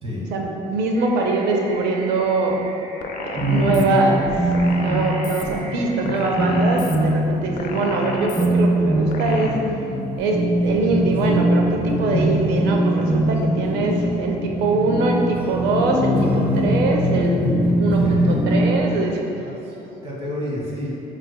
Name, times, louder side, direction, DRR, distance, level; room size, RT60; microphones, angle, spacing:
voice 1, 0.3-2.6 3.2-4.3 4.8-9.6 10.2-19.2, right 3 dB, 85° right, 1 dB, 0.6 m, -23 dB
sound 1, 0.9-6.0, right 3 dB, 70° right, 1.1 m, -41 dB
sound 2, 3.0-3.8 4.5-5.4 6.0-7.0 7.6-8.5 9.1-9.5, left 5 dB, 50° left, 0.4 m, -33 dB
sound 3, 3.3-18.8, right 1 dB, 10° right, 0.7 m, -22 dB
voice 2, 19.4-20.9, left 1 dB, 35° right, -6 dB, 1.2 m, -31 dB
5.5 x 3.3 x 2.2 m, 2.8 s
cardioid pair, 110°, 17 cm